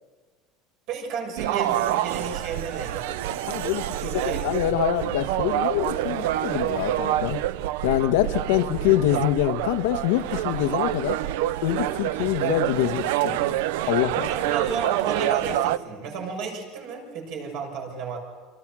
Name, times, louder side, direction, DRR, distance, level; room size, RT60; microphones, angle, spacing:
voice 1, 0.9-3.1 3.9-4.5 14.3-18.2, right 5 dB, 55° right, 2 dB, 6.8 m, -32 dB
sound 1, 1.4-15.8, right 13 dB, 80° right, 0.7 m, -27 dB
voice 2, 3.3-7.4 7.8-11.2 11.6-14.3, left 13 dB, 85° left, 9 dB, 1.4 m, -25 dB
29.0 x 26.0 x 6.3 m, 1.4 s
cardioid pair, 170°, 0 cm